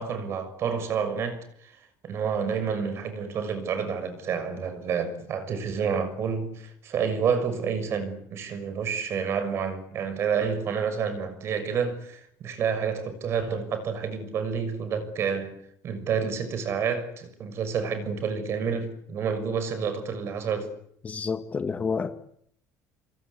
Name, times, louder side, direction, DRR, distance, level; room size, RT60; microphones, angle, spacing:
voice 1, 0.0-1.7 2.0-15.6 15.8-20.7, right 6 dB, 40° right, 6.4 m, -29 dB
voice 2, 21.0-22.1, left 5 dB, 20° left, 1.8 m, -29 dB
27.0 x 26.0 x 8.4 m
cardioid pair, 160°, 7 cm